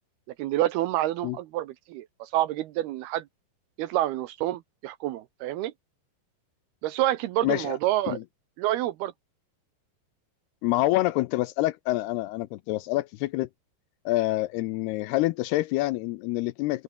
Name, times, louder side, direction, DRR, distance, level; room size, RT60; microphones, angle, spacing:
voice 1, 0.4-3.3 3.8-5.7 6.8-8.2 8.6-9.1, right 14 dB, 75° right, 2.6 m, -28 dB
voice 2, 7.4-7.8 8.1-8.2 10.6-13.5 14.1-16.8, left 18 dB, 80° left, 2.5 m, -27 dB
omnidirectional pair, 5.0 m